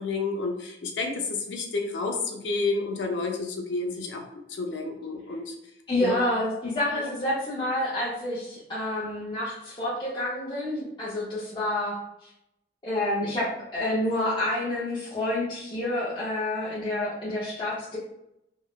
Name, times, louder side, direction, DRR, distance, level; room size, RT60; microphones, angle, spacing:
voice 1, 0.0-4.2 4.5-5.5 6.0-6.2 7.0-7.1, left 3 dB, 80° left, 3 dB, 0.5 m, -30 dB
voice 2, 5.9-12.0 12.8-13.5 13.7-18.0, left 1 dB, 25° left, -9 dB, 0.5 m, -28 dB
2.9 x 2.0 x 2.3 m, 0.83 s
head